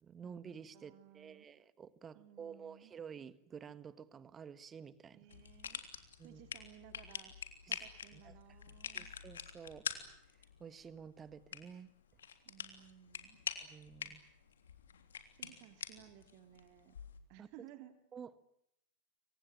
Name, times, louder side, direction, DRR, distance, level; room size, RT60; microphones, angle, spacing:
voice 1, 0.0-5.2 6.2-6.4 7.7-7.8 8.1-8.3 8.9-9.8 10.6-11.9 13.6-14.2 17.4-17.5 18.1-18.3, right 7 dB, 20° right, 15 dB, 1.6 m, -51 dB
voice 2, 0.7-1.5 2.1-2.9 5.1-5.8 6.2-7.3 7.7-9.1 12.4-13.4 15.4-17.0 17.3-17.9, right 12 dB, 45° right, 8 dB, 2.8 m, -58 dB
sound 1, 5.3-17.2, left 7 dB, 65° left, 3.3 m, -47 dB
28.5 x 25.0 x 7.7 m, 0.78 s
figure-of-eight pair, 90°, 0 cm